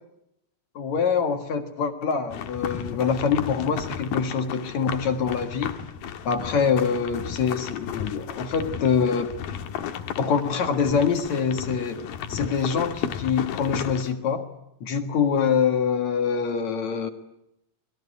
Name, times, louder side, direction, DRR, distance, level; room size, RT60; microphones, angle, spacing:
voice 1, 0.8-5.7 6.2-9.3 10.2-14.5 14.8-17.1, left 6 dB, 55° left, 6 dB, 2.8 m, -25 dB
sound 1, 2.3-14.1, left 8 dB, 85° left, 3.2 m, -34 dB
26.5 x 21.5 x 9.9 m, 0.85 s
omnidirectional pair, 4.1 m